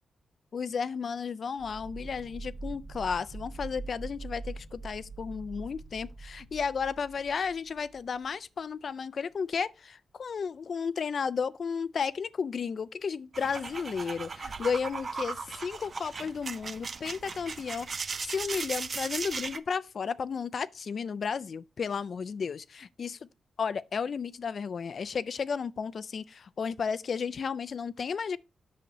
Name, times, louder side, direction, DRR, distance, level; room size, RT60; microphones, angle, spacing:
voice 1, 0.5-23.3 23.6-28.4, left 6 dB, 45° left, 0.3 m, -33 dB
sound 1, 1.6-8.3, right 3 dB, 20° right, 1.5 m, -43 dB
sound 2, 13.3-19.6, right 4 dB, 35° right, 0.4 m, -37 dB
8.3 x 6.6 x 3.0 m
wide cardioid pair, 160°, 0 cm